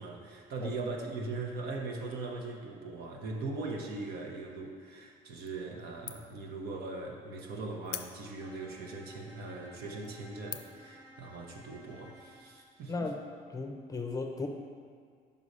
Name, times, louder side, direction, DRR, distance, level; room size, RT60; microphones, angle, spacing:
voice 1, 0.0-13.1, right 3 dB, 70° right, 0 dB, 1.0 m, -40 dB
sound 1, 5.5-5.8 6.1-6.5 6.9-7.0 7.8-8.6 9.2-9.3 9.8-10.1 10.5-10.9, left 13 dB, 85° left, 0.4 m, -42 dB
Bowed string instrument, 8.4-12.6, left 1 dB, 25° right, 1.4 m, -55 dB
voice 2, 12.9-13.2 13.5-14.5, left 3 dB, 20° left, 3 dB, 0.6 m, -35 dB
5.5 x 4.9 x 5.4 m, 2.1 s
cardioid pair, 110°, 17 cm